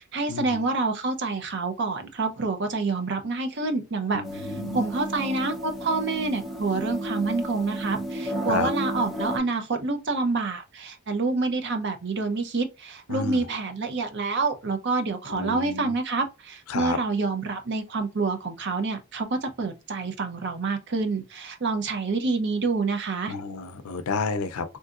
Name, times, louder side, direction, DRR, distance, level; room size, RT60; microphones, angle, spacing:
voice 1, 0.1-23.3, right 3 dB, 50° right, 0.6 m, -27 dB
voice 2, 4.1-4.8 8.5-8.7 13.1-13.4 15.3-15.9 16.7-17.0 23.3-24.8, left 4 dB, 75° left, 0.5 m, -30 dB
sound 1, 4.2-9.4, equal, ahead, 0.5 m, -32 dB
3.7 x 2.7 x 2.4 m
head